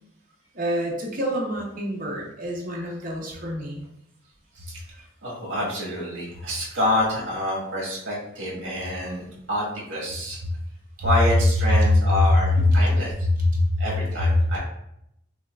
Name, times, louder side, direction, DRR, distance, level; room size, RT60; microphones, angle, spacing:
voice 1, 0.5-3.9 10.4-10.5 11.0-11.1 11.6-14.6, left 1 dB, 40° right, -2 dB, 0.7 m, -23 dB
voice 2, 5.2-10.4 11.0-13.1 13.8-14.6, left 1 dB, 65° right, -5 dB, 1.4 m, -27 dB
5.5 x 2.2 x 2.3 m, 0.79 s
head